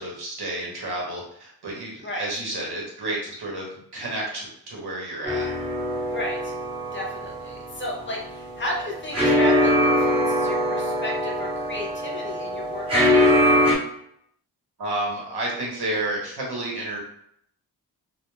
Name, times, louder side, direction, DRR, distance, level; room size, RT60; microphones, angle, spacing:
voice 1, 0.0-5.5 14.8-17.0, right 1 dB, 85° right, -2 dB, 0.9 m, -31 dB
sound 1, 5.2-13.8, equal, 15° right, 0.8 m, -23 dB
voice 2, 6.1-6.5 6.9-13.6, left 1 dB, 30° left, -1 dB, 0.5 m, -33 dB
2.2 x 2.2 x 3.1 m, 0.70 s
wide cardioid pair, 135°, 38 cm